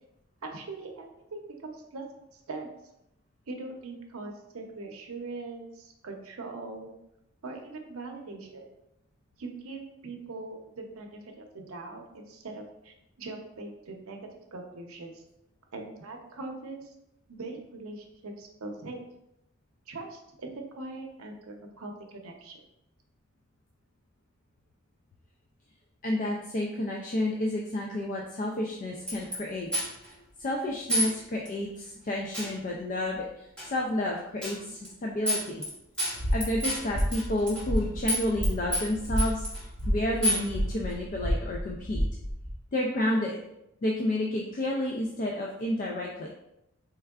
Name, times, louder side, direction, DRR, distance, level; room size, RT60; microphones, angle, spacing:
voice 1, 0.4-2.0 2.3-2.7 3.5-6.9 7.4-8.7 9.4-14.2 14.5-15.2 15.7-16.9 17.3-19.0 19.9-22.6, right 3 dB, 80° right, 3 dB, 0.7 m, -41 dB
voice 2, 26.0-29.7 30.4-35.7 36.3-42.1 42.7-43.4 43.8-46.3, left 1 dB, 40° left, -1 dB, 0.3 m, -30 dB
sound 1, 29.1-29.4 29.7-30.1 30.9-31.1 31.5-31.6 32.3-32.6 33.6-33.7 34.4-34.6 34.8-34.9 35.3-35.7 36.0-37.8 38.1-38.5 38.7-39.6 40.2-40.5, equal, 5° left, 1.0 m, -29 dB
sound 2, 36.1-42.5, equal, 65° left, 1.1 m, -31 dB
4.4 x 3.3 x 2.3 m, 0.83 s
head